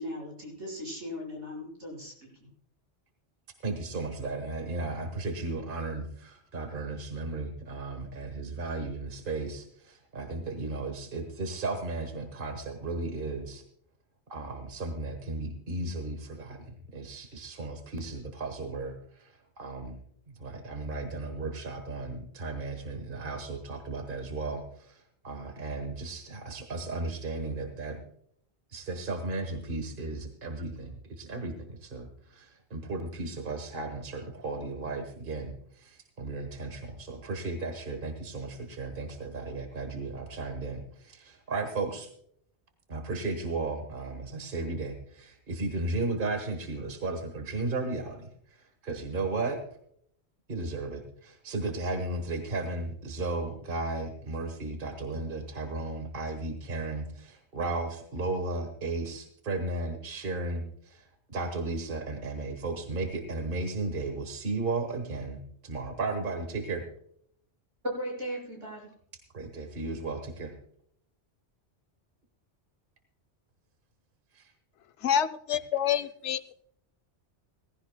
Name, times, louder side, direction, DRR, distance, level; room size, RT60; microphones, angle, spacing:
voice 1, 0.0-2.5 67.8-68.9, equal, 80° right, -3 dB, 6.1 m, -37 dB
voice 2, 3.6-13.6 14.3-20.0 20.3-28.0 28.7-42.1 42.9-49.6 50.5-66.8 69.3-70.5 74.3-74.5, right 3 dB, 50° right, 6 dB, 1.5 m, -35 dB
voice 3, 75.0-76.5, left 9 dB, 85° left, 11 dB, 1.0 m, -27 dB
18.5 x 15.5 x 2.2 m, 0.67 s
omnidirectional pair, 1.2 m